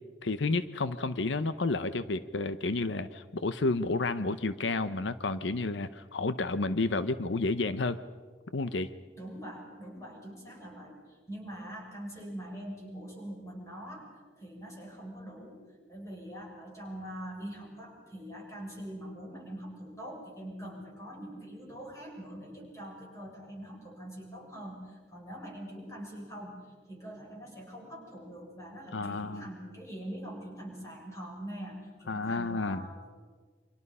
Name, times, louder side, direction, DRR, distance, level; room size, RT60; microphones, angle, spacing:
voice 1, 0.2-8.0 8.5-8.9 28.9-29.4 32.1-32.9, left 3 dB, 85° left, 13 dB, 0.8 m, -31 dB
voice 2, 9.1-14.1 14.4-15.6 15.9-26.6 26.9-33.1, equal, 15° left, -1 dB, 7.0 m, -43 dB
29.0 x 25.0 x 5.6 m, 1.5 s
head